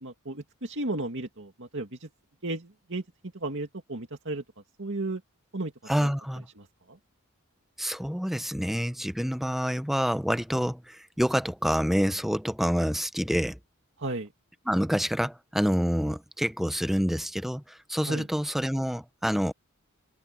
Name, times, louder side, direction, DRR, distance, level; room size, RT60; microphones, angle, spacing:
voice 1, 0.0-2.1 2.4-3.0 3.3-4.4 4.8-5.2 5.5-5.7 6.0-6.1 6.6-7.0 14.0-14.3 18.1-18.3, right 2 dB, 60° right, 2.3 m, -34 dB
voice 2, 5.9-6.5 7.8-13.6 14.7-19.5, equal, ahead, 0.6 m, -27 dB
head